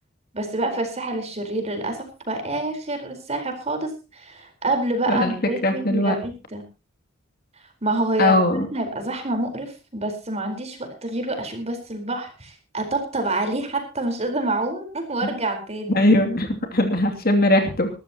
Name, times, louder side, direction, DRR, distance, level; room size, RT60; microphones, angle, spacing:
voice 1, 0.3-6.6 7.8-8.4 8.7-16.0, right 2 dB, 30° right, 5 dB, 4.3 m, -27 dB
voice 2, 5.6-6.1 8.2-8.7 15.9-17.9, left 1 dB, 50° left, 4 dB, 2.7 m, -19 dB
22.0 x 13.5 x 3.0 m, 0.31 s
head